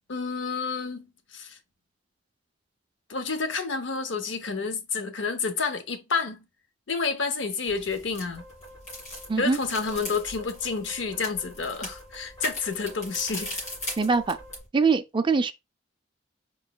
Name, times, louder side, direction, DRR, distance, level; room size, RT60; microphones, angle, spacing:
voice 1, 0.1-1.6 3.1-6.5 6.9-8.4 9.4-13.5, left 4 dB, 75° left, 0.7 m, -29 dB
sound 1, 7.7-14.7, left 1 dB, 40° left, 2.9 m, -39 dB
sound 2, 8.4-14.6, equal, 20° left, 2.2 m, -49 dB
voice 2, 14.0-14.4 14.7-15.5, right 4 dB, 25° right, 0.4 m, -23 dB
4.6 x 3.9 x 2.2 m
head